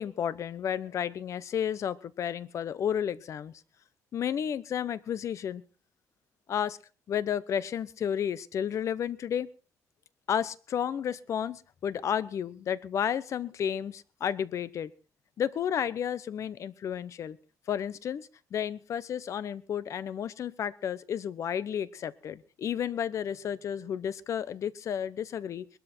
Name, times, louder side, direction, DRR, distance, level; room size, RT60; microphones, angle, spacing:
voice 1, 0.0-3.5 4.1-5.6 6.5-6.8 7.1-9.5 10.3-14.9 15.4-17.4 17.7-25.7, left 9 dB, 50° left, 17 dB, 0.9 m, -32 dB
21.0 x 13.0 x 4.4 m, 0.37 s
cardioid pair, 145°, 6 cm